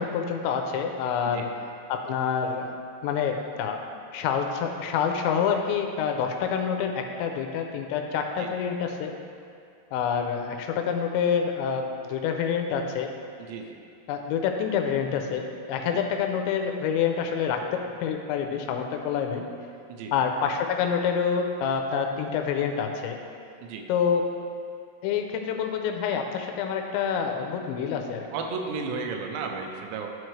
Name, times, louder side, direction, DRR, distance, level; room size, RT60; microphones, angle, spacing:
voice 1, 0.0-1.5 1.9-2.7 3.0-3.8 4.1-9.1 9.9-13.1 14.1-17.7 18.0-19.4 20.1-23.2 23.9-24.3 25.0-28.3, left 7 dB, 90° left, 4 dB, 2.9 m, -27 dB
voice 2, 28.3-30.1, right 4 dB, 85° right, 3 dB, 3.0 m, -33 dB
12.5 x 4.5 x 3.2 m, 2.4 s
omnidirectional pair, 5.2 m